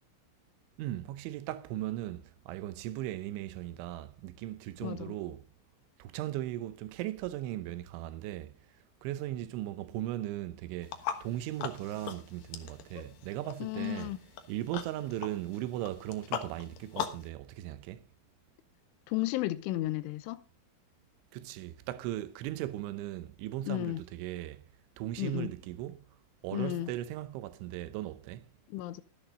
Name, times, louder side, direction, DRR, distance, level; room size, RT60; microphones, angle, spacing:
voice 1, 0.8-5.5 6.0-8.6 9.0-14.1 14.5-18.0 21.3-24.6 25.0-26.1 26.4-28.5, right 14 dB, 80° right, 3.1 m, -38 dB
voice 2, 4.8-5.1 13.6-14.2 19.1-20.4 23.7-24.0 25.2-25.5 26.5-26.9 28.7-29.0, left 16 dB, 85° left, 3.2 m, -33 dB
sound 1, 10.8-17.3, left 8 dB, 65° left, 2.3 m, -41 dB
13.5 x 10.5 x 3.9 m
omnidirectional pair, 5.6 m